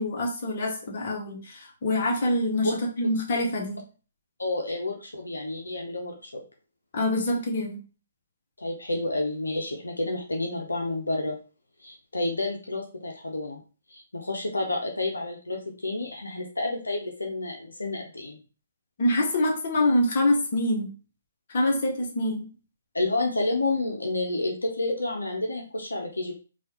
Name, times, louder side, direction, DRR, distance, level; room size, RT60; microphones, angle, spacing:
voice 1, 0.0-3.8 6.9-7.8 19.0-20.9 21.5-22.5, left 1 dB, 50° left, 0 dB, 0.9 m, -25 dB
voice 2, 4.4-6.4 8.6-11.4 11.8-13.6 13.9-18.4 22.9-26.3, left 2 dB, 85° left, 1 dB, 0.6 m, -30 dB
3.1 x 2.4 x 2.8 m, 0.36 s
figure-of-eight pair, 135°, 0 cm